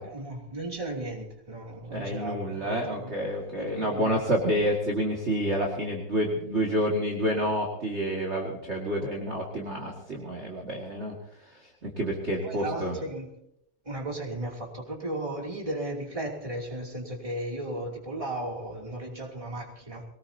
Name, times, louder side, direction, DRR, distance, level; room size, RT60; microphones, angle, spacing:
voice 1, 0.0-3.1 3.5-4.2 12.4-13.3 13.8-20.0, right 1 dB, 15° right, 0 dB, 2.9 m, -35 dB
voice 2, 1.9-11.1 11.4-11.5 11.8-13.0, equal, 30° right, -1 dB, 2.3 m, -29 dB
22.0 x 19.0 x 2.9 m, 0.74 s
omnidirectional pair, 2.4 m